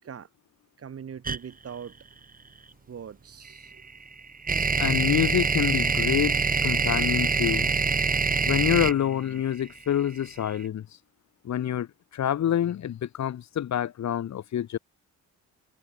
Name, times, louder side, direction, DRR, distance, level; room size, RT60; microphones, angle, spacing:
voice 1, 0.8-2.0 2.9-3.9, right 7 dB, 50° right, 6.0 m, -41 dB
sound 1, 1.2-1.4 3.5-10.5, right 5 dB, 30° right, 1.9 m, -25 dB
voice 2, 4.8-7.7 8.4-10.9 11.4-14.8, left 10 dB, 65° left, 3.8 m, -27 dB
cardioid pair, 90°, 30 cm